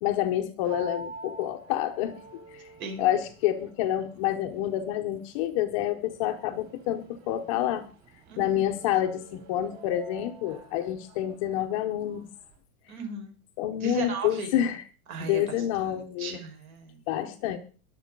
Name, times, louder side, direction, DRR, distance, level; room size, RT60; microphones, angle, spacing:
voice 1, 0.0-2.2 2.5-2.6 3.0-7.8 8.4-12.3 13.6-14.8 15.2-16.4 17.1-17.6, left 12 dB, 25° left, 5 dB, 0.6 m, -28 dB
sound 1, 0.6-12.6, right 3 dB, 30° right, 4.8 m, -48 dB
voice 2, 2.8-3.1 8.3-8.6 12.9-13.4 13.8-14.5 15.1-15.4 16.2-17.0, right 4 dB, 65° right, 4 dB, 5.8 m, -36 dB
22.0 x 7.4 x 5.2 m, 0.38 s
supercardioid pair, 175°, 45 cm